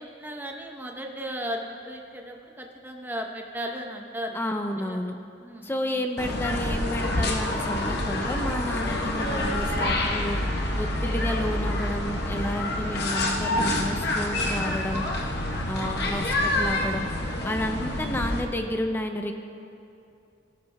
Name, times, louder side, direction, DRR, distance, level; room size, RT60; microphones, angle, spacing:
voice 1, 0.0-4.4 4.8-5.0 5.4-6.0, equal, 10° right, 1 dB, 0.8 m, -36 dB
voice 2, 4.3-5.2 5.6-15.0 15.7-19.4, left 1 dB, 10° left, 4 dB, 0.5 m, -31 dB
sound 1, 6.2-18.4, left 1 dB, 55° left, 1.0 m, -27 dB
17.5 x 13.5 x 2.3 m, 2.6 s
head